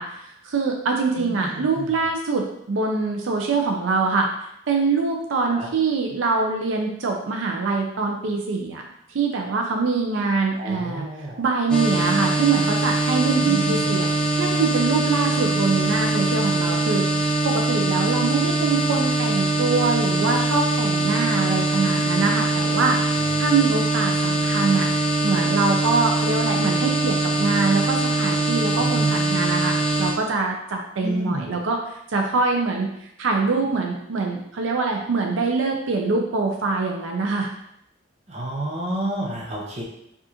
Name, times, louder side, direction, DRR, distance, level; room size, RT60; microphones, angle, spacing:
voice 1, 0.0-4.3 4.7-8.8 9.1-11.1 11.4-14.0 14.4-23.0 23.4-24.9 25.2-37.5, right 4 dB, 75° right, 1 dB, 0.4 m, -24 dB
voice 2, 1.2-1.9 5.5-5.7 10.6-11.4 13.4-13.9 23.2-23.5 28.8-29.3 31.0-31.5 38.3-39.8, right 1 dB, 35° right, -2 dB, 0.7 m, -30 dB
sound 1, 11.7-30.1, right 2 dB, 5° left, 0.4 m, -22 dB
4.8 x 2.4 x 2.8 m, 0.77 s
head